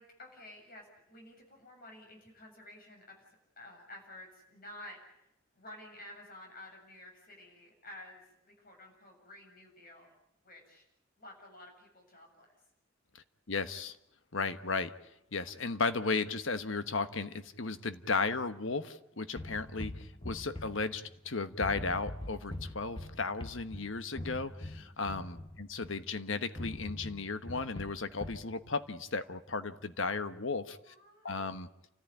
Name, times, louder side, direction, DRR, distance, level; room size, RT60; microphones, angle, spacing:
voice 1, 0.0-5.3 5.6-10.1 10.4-10.8 11.2-12.5 30.7-31.3, left 1 dB, 45° left, 2 dB, 7.5 m, -52 dB
voice 2, 13.1-14.0 14.3-14.9 15.3-30.9 31.2-31.7, left 4 dB, 70° left, 11 dB, 1.2 m, -35 dB
sound 1, 19.4-21.3 21.6-26.1 26.6-28.5, left 1 dB, 25° left, 1.3 m, -43 dB
29.5 x 14.5 x 9.9 m, 0.81 s
head